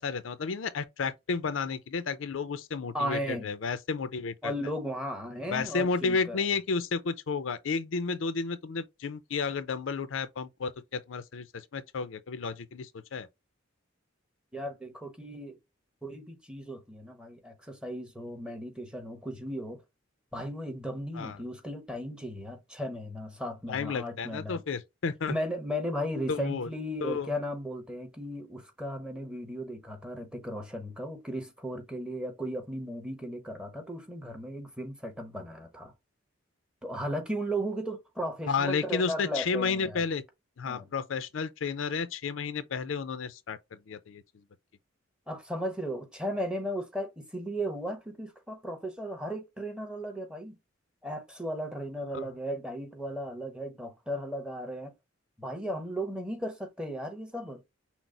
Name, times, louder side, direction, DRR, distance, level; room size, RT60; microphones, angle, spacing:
voice 1, 0.0-4.5 5.5-13.3 21.1-21.4 23.7-25.3 26.3-26.7 27.0-27.3 38.5-40.2 40.6-44.2 52.1-52.3, left 5 dB, 80° left, 0.5 m, -32 dB
voice 2, 2.9-3.5 4.4-6.4 14.5-15.6 16.0-19.8 20.3-24.6 25.3-35.9 36.8-40.0 40.6-40.9 45.3-50.6 51.0-54.9 55.4-57.6, equal, 5° right, 1.0 m, -36 dB
6.1 x 2.0 x 3.8 m
head